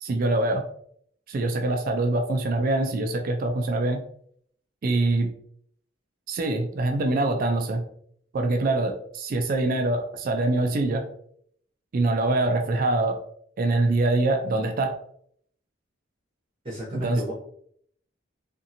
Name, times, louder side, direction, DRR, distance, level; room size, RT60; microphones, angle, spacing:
voice 1, 0.0-0.6 1.3-4.0 4.8-5.3 6.3-7.8 8.3-11.0 11.9-13.2 13.6-15.0 16.9-17.2, right 2 dB, 45° right, 4 dB, 0.3 m, -24 dB
voice 2, 16.6-17.3, right 1 dB, 30° right, -6 dB, 0.7 m, -33 dB
2.7 x 2.5 x 2.5 m, 0.66 s
head